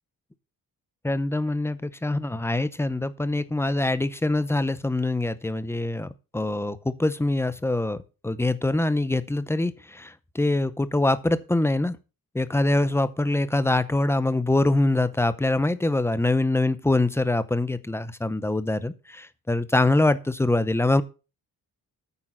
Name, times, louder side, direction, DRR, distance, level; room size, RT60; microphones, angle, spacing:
voice 1, 1.0-12.0 12.3-21.0, left 2 dB, 5° left, 14 dB, 0.6 m, -24 dB
9.0 x 6.3 x 5.8 m, 0.32 s
cardioid pair, 135°, 35 cm